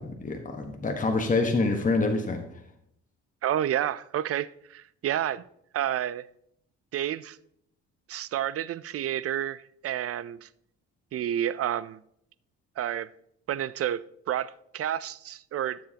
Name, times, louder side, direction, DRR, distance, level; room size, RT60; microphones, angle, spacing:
voice 1, 0.0-2.4, left 3 dB, 25° left, 1.3 m, -26 dB
voice 2, 3.4-5.5 5.7-6.3 6.9-7.4 8.1-10.5 11.1-12.0 12.8-13.1 13.5-15.8, right 11 dB, 50° right, 0.5 m, -30 dB
13.5 x 7.3 x 2.9 m
cardioid pair, 90°, 30 cm